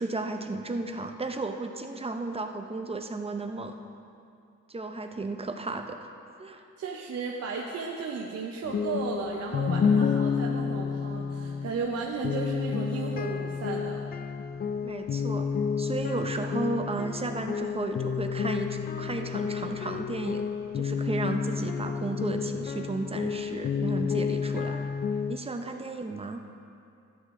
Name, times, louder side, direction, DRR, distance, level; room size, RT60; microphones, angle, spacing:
voice 1, 0.0-3.7 4.7-6.1 6.4-6.6 14.8-15.5 15.8-20.4 20.7-24.9 25.3-26.4, right 3 dB, 20° right, 5 dB, 0.8 m, -34 dB
voice 2, 6.8-14.1 25.7-25.8, right 5 dB, 55° right, -1 dB, 1.0 m, -34 dB
sound 1, 8.6-25.4, left 6 dB, 30° left, 0.4 m, -30 dB
12.5 x 9.0 x 3.8 m, 2.5 s
cardioid pair, 90°, 30 cm